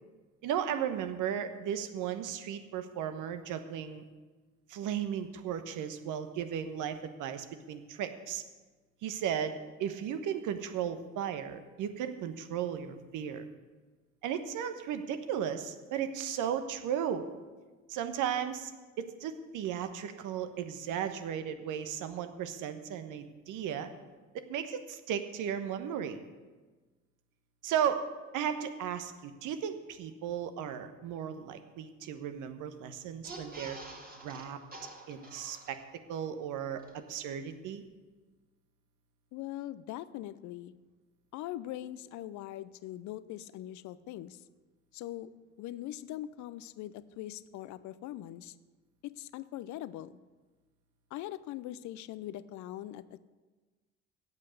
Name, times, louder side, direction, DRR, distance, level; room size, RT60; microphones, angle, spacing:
voice 1, 0.4-4.0 4.7-8.4 9.0-13.5 14.2-17.3 17.9-18.7 19.0-23.9 24.3-26.2 27.6-28.1 28.3-33.8 34.2-34.6 35.1-35.8 36.1-37.8, right 9 dB, 60° right, 9 dB, 1.2 m, -35 dB
sound 1, 33.1-36.1 36.5-36.6 36.8-36.9, right 2 dB, 25° right, 2.1 m, -47 dB
voice 2, 39.3-40.7 41.3-44.4 44.9-45.3 45.6-48.5 49.2-50.2 51.1-53.2, left 13 dB, 55° left, 15 dB, 0.7 m, -41 dB
16.5 x 5.6 x 6.6 m, 1.3 s
hypercardioid pair, 55°, 35 cm